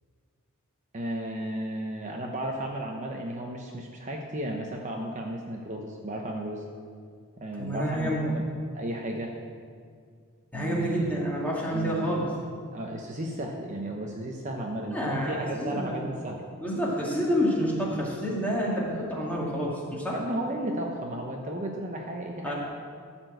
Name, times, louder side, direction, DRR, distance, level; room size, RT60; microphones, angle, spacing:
voice 1, 0.9-6.6 7.4-8.5 8.7-9.3 10.5-11.1 11.7-12.3 12.7-16.4 20.1-22.5, right 1 dB, 35° right, 0 dB, 0.8 m, -34 dB
voice 2, 7.6-8.3 10.5-12.3 14.9-16.1 16.6-20.2 22.4-22.5, equal, 5° left, -5 dB, 2.1 m, -28 dB
13.5 x 4.5 x 7.8 m, 2.1 s
head